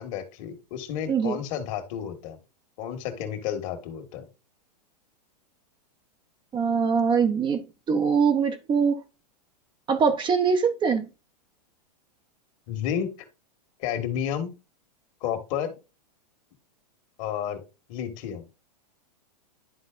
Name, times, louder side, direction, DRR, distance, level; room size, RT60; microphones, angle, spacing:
voice 1, 0.0-2.4 2.8-4.2 12.7-13.1 13.8-14.5 15.2-15.7 17.2-17.6 17.9-18.4, left 9 dB, 50° left, 1.8 m, -31 dB
voice 2, 6.5-9.0 9.9-11.0, right 6 dB, 20° right, 0.8 m, -23 dB
12.0 x 4.0 x 2.5 m
hypercardioid pair, 115°, 21 cm